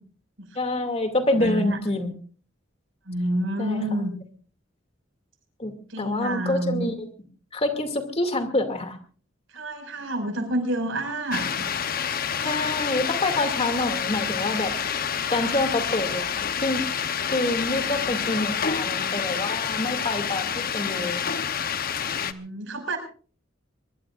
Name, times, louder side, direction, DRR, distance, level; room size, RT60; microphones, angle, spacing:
voice 1, 0.6-2.1 3.6-3.9 5.6-5.7 6.0-7.1 7.5-9.0 12.4-14.7 15.3-16.8 17.2-21.2, left 2 dB, 30° left, 6 dB, 2.5 m, -26 dB
voice 2, 1.3-1.8 3.1-4.1 5.9-6.8 9.5-11.7 17.9-18.4 22.2-23.0, right 1 dB, 80° right, 5 dB, 5.7 m, -29 dB
sound 1, 11.3-22.3, left 7 dB, 50° left, 0.9 m, -28 dB
23.5 x 22.5 x 2.5 m, 0.42 s
head